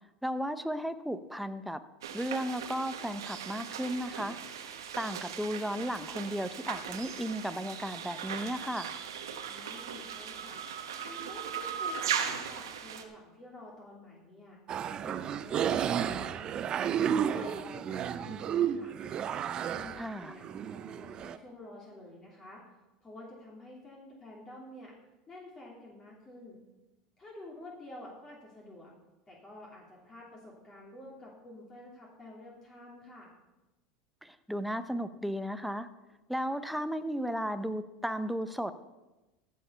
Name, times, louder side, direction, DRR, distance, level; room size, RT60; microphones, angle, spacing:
voice 1, 0.2-1.8 2.1-4.4 4.7-8.9 20.0-20.3 34.2-35.9 36.3-38.7, equal, ahead, 10 dB, 0.7 m, -35 dB
sound 1, 2.0-13.0, right 8 dB, 90° right, 1.2 m, -38 dB
voice 2, 9.5-10.6 11.0-14.6 15.0-16.9 17.2-18.9 19.7-22.6 23.0-24.9 25.3-26.6 27.2-28.9 29.3-33.3, left 1 dB, 25° left, -3 dB, 3.0 m, -49 dB
sound 2, 14.7-21.4, right 8 dB, 40° right, 0.6 m, -32 dB
14.5 x 6.6 x 5.6 m, 1.0 s
hypercardioid pair, 95°, 2 cm